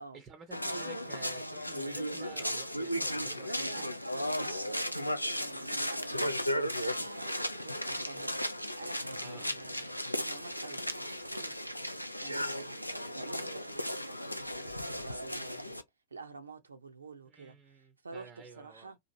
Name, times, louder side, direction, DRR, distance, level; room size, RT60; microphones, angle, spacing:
voice 1, 0.1-3.9 7.9-8.1 9.1-9.5 17.3-18.9, right 4 dB, 25° right, 0.6 m, -52 dB
sound 1, 0.5-15.8, equal, 90° left, 0.4 m, -35 dB
voice 2, 3.7-8.4 8.7-11.5 12.0-15.8 16.1-19.0, right 3 dB, 75° right, 0.5 m, -49 dB
2.9 x 2.5 x 2.5 m
figure-of-eight pair, 90°, 0 cm